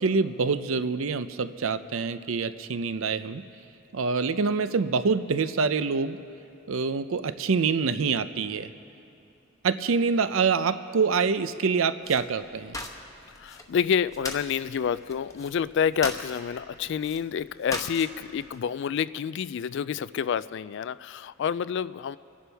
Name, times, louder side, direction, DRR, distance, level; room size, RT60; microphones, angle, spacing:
voice 1, 0.0-3.4 3.9-6.2 6.7-8.7 9.6-12.8, right 5 dB, 70° right, 12 dB, 0.5 m, -26 dB
sound 1, 12.0-18.6, left 2 dB, 15° left, 1.0 m, -40 dB
voice 2, 13.4-22.2, left 7 dB, 60° left, 17 dB, 0.3 m, -28 dB
28.5 x 11.0 x 3.4 m, 2.8 s
head